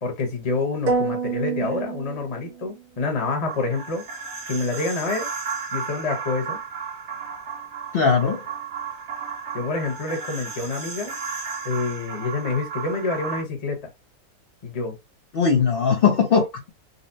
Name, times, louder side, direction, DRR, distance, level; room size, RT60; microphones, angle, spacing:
voice 1, 0.0-4.0 4.5-5.3 5.7-6.6 9.5-11.1 11.6-13.8 14.6-15.0, left 3 dB, 30° left, 0.9 m, -27 dB
sound 1, 0.9-2.8, right 4 dB, 75° right, 1.5 m, -27 dB
sound 2, 3.4-13.4, right 6 dB, 50° right, 1.2 m, -34 dB
voice 2, 7.9-8.4 15.3-16.7, left 6 dB, 65° left, 0.5 m, -19 dB
4.0 x 2.0 x 2.6 m
omnidirectional pair, 1.7 m